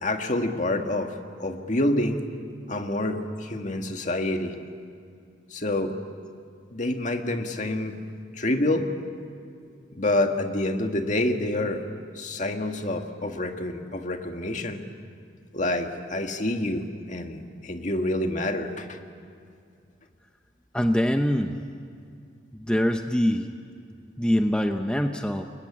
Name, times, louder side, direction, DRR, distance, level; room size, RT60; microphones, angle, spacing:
voice 1, 0.0-1.1 1.4-2.2 2.7-4.6 5.5-6.0 6.7-8.0 8.3-8.9 9.9-11.8 12.2-14.8 15.5-19.0, left 1 dB, 45° left, 5 dB, 1.9 m, -27 dB
voice 2, 20.7-21.5 22.5-23.5 24.2-25.4, equal, 5° left, 5 dB, 0.8 m, -24 dB
29.5 x 22.5 x 8.7 m, 2.3 s
head